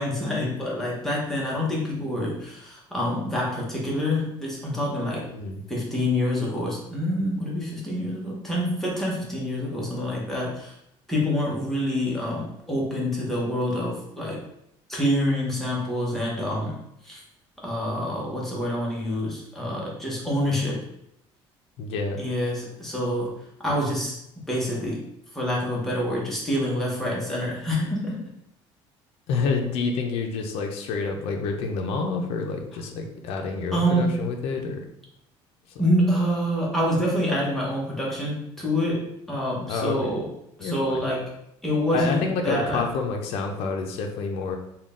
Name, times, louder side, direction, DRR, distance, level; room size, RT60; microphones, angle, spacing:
voice 1, 0.0-5.2 5.7-10.7 11.1-14.4 14.9-16.7 17.0-17.2 17.6-20.8 22.2-24.2 24.5-25.0 25.3-28.2 33.7-34.2 35.8-40.3 40.6-41.3 41.6-42.8, equal, 5° left, -4 dB, 0.8 m, -26 dB
voice 2, 5.2-5.6 21.8-22.2 29.3-34.9 35.7-35.8 39.7-40.2 40.6-41.1 41.9-44.6, left 4 dB, 65° left, 3 dB, 0.5 m, -28 dB
3.7 x 2.2 x 3.6 m, 0.77 s
cardioid pair, 165°, 11 cm